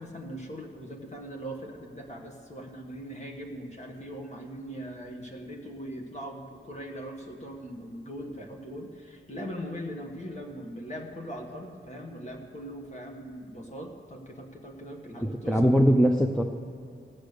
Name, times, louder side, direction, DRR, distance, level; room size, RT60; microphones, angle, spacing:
voice 1, 0.0-15.8, equal, 35° left, 1 dB, 1.5 m, -40 dB
voice 2, 15.2-16.4, equal, 5° left, 3 dB, 0.6 m, -21 dB
16.5 x 8.3 x 6.7 m, 2.5 s
wide cardioid pair, 110°, 21 cm